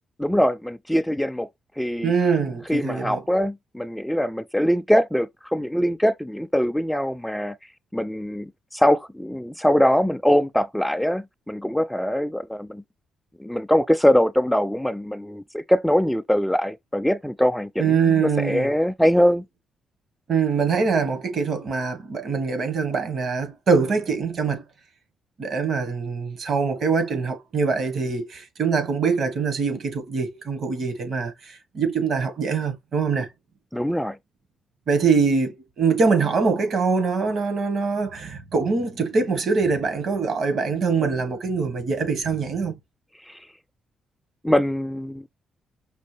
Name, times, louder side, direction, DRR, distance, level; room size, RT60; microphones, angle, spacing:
voice 1, 0.2-1.5 1.8-2.1 2.7-7.6 7.9-12.8 13.4-19.4 33.7-34.2 43.3-43.4 44.4-45.3, equal, 5° left, 0.4 m, -22 dB
voice 2, 2.0-3.2 17.8-18.7 20.3-24.6 25.4-33.3 34.9-42.7, right 5 dB, 65° right, 1.4 m, -23 dB
5.3 x 2.3 x 3.3 m
supercardioid pair, 65°, 0 cm